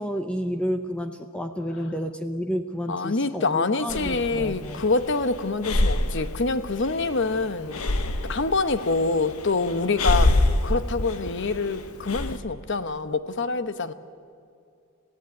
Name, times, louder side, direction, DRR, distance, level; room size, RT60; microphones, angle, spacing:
voice 1, 0.0-4.8, equal, 5° left, 6 dB, 0.8 m, -30 dB
voice 2, 2.9-7.8 8.3-10.3 10.6-13.9, left 3 dB, 55° left, 11 dB, 1.0 m, -26 dB
Breathing, 3.9-12.4, left 1 dB, 80° left, 1.4 m, -27 dB
26.5 x 16.0 x 9.4 m, 2.5 s
head